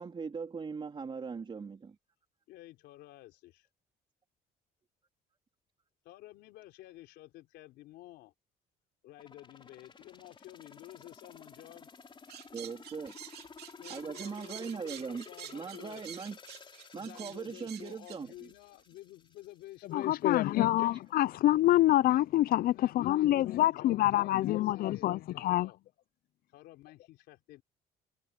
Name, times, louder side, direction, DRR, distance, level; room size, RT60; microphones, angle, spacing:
voice 1, 0.0-2.0 12.5-13.1 13.9-15.2 15.5-16.4 16.9-18.5, right 5 dB, 30° right, 3.7 m, -40 dB
voice 2, 2.5-3.7 6.0-8.3 9.0-11.9 13.8-16.0 16.9-20.7 22.7-25.8 26.5-27.6, left 16 dB, 85° left, 3.7 m, -52 dB
sound 1, 9.2-19.9 20.3-20.4, left 5 dB, 30° left, 3.4 m, -53 dB
sound 2, 12.3-18.2, right 12 dB, 70° right, 2.8 m, -48 dB
voice 3, 19.9-25.7, left 14 dB, 60° left, 0.5 m, -26 dB
cardioid pair, 110°, 17 cm